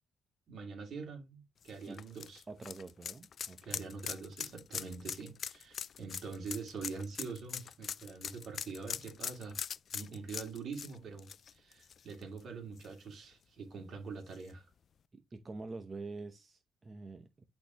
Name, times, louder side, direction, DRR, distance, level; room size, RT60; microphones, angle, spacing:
voice 1, 0.5-2.4 3.6-9.6 9.9-14.6, right 4 dB, 60° right, 2.7 m, -44 dB
sound 1, 1.6-12.4 12.8-12.9 14.3-14.4, left 7 dB, 55° left, 0.4 m, -42 dB
voice 2, 2.5-3.8 15.1-17.4, right 3 dB, 30° right, 0.8 m, -46 dB
10.5 x 4.2 x 2.9 m
cardioid pair, 90°, 0 cm